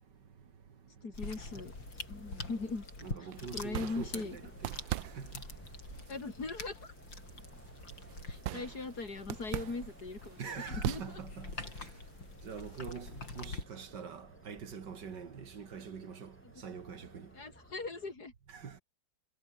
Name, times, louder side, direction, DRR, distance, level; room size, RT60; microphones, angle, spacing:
voice 1, 1.0-1.7 2.1-2.8 3.5-4.4 6.1-6.9 8.3-11.2 17.3-18.3, left 3 dB, 55° left, 4.1 m, -40 dB
sound 1, 1.1-13.6, left 3 dB, 80° left, 6.8 m, -46 dB
sound 2, 1.4-18.1, equal, 5° left, 7.1 m, -59 dB
voice 2, 3.0-4.7 5.2-5.3 10.4-11.5 12.4-16.3 16.6-17.3 18.5-18.7, right 6 dB, 65° right, 2.5 m, -44 dB
sound 3, 3.3-11.7, right 14 dB, 85° right, 1.5 m, -42 dB
omnidirectional pair, 2.0 m